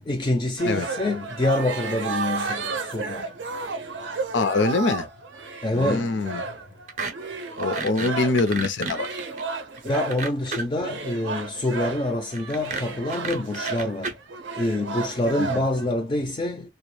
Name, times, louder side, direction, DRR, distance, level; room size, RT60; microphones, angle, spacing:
voice 1, 0.1-3.2 5.6-6.1 9.8-14.1 14.6-16.6, left 1 dB, 25° left, 0.3 m, -26 dB
sound 1, 0.6-8.5 8.9-10.3 10.8-15.8, right 4 dB, 90° right, 0.5 m, -33 dB
voice 2, 4.3-5.1 5.7-6.4 7.6-9.1 15.4-15.6, left 3 dB, 85° left, 0.5 m, -24 dB
sound 2, 6.9-7.1 7.4-10.8 12.3-14.1, right 3 dB, 40° right, 0.5 m, -31 dB
2.3 x 2.0 x 3.0 m
head